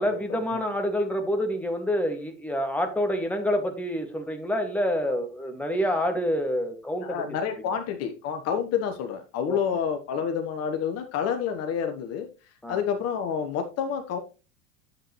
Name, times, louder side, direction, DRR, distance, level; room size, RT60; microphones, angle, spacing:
voice 1, 0.0-7.3 7.7-7.8 9.5-9.6 12.6-12.8, equal, 5° left, 4 dB, 1.9 m, -27 dB
voice 2, 7.0-12.3 12.7-14.2, left 7 dB, 40° left, 6 dB, 1.2 m, -29 dB
10.0 x 7.8 x 3.1 m, 0.32 s
figure-of-eight pair, 80°, 38 cm